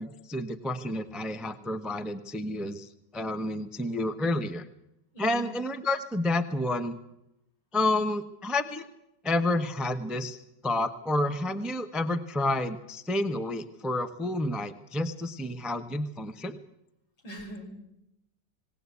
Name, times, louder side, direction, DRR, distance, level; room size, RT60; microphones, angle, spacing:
voice 1, 0.0-4.6 5.2-7.0 7.7-8.8 9.2-10.4 10.6-16.6, left 1 dB, ahead, 9 dB, 0.3 m, -30 dB
voice 2, 5.1-5.5 17.2-17.6, right 1 dB, 85° left, 1 dB, 5.2 m, -41 dB
19.0 x 18.0 x 8.3 m, 0.85 s
omnidirectional pair, 2.1 m